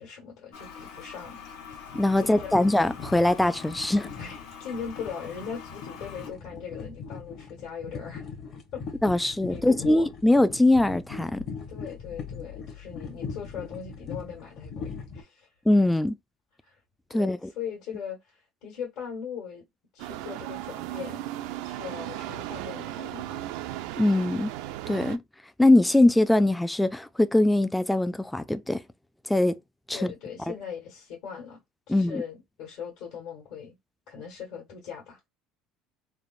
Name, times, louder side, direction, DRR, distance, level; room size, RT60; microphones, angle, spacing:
voice 1, 0.0-1.4 2.2-2.6 4.1-8.3 8.7-8.8 9.2-10.1 11.7-15.5 16.6-16.8 17.1-19.6 19.9-21.2 21.6-23.5 29.9-31.6 31.9-33.8 34.1-35.3, left 7 dB, 65° left, 1.3 m, -40 dB
Toilet flush, 0.5-6.3, left 7 dB, 80° left, 1.1 m, -44 dB
sound 1, 1.7-15.2, left 5 dB, 45° left, 0.9 m, -40 dB
voice 2, 1.9-4.1 9.0-11.4 15.7-16.2 17.1-17.5 24.0-24.5 24.9-25.2 25.6-28.8 29.3-29.6 29.9-30.0 31.9-32.2, left 1 dB, 5° left, 0.3 m, -22 dB
sound 2, 20.0-25.2, right 14 dB, 75° right, 0.3 m, -36 dB
3.3 x 2.0 x 2.3 m
supercardioid pair, 115°, 0 cm